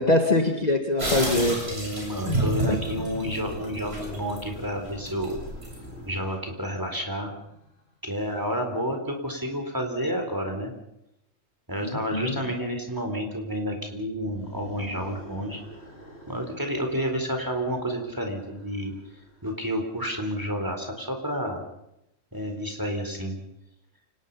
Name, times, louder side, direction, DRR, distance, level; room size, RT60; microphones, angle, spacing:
voice 1, 0.0-1.7 2.3-2.4 2.7-2.8 11.8-12.4, left 2 dB, 30° left, 4 dB, 1.8 m, -23 dB
sound 1, 1.0-6.1, right 1 dB, 50° right, 8.0 m, -31 dB
voice 2, 1.7-5.4 6.1-7.3 8.0-10.7 11.7-15.6 16.3-18.9 19.4-21.6 22.3-23.4, equal, 15° right, 3 dB, 4.2 m, -30 dB
sound 2, 2.7-7.9 14.1-19.8, equal, 55° left, 5.6 m, -46 dB
29.0 x 19.0 x 5.6 m, 0.84 s
omnidirectional pair, 1.3 m